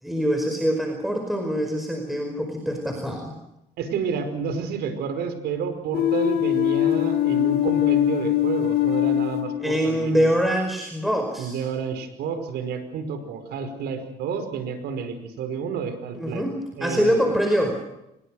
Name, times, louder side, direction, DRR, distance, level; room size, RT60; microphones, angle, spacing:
voice 1, 0.0-3.3 9.6-11.6 16.1-16.5 16.8-17.8, equal, ahead, 2 dB, 5.1 m, -24 dB
voice 2, 3.8-10.3 11.4-16.5 16.8-17.2, right 6 dB, 75° right, 9 dB, 5.3 m, -30 dB
sound 1, 5.9-10.2, left 12 dB, 70° left, 2.0 m, -22 dB
27.0 x 21.5 x 6.5 m, 0.86 s
cardioid pair, 110°, 17 cm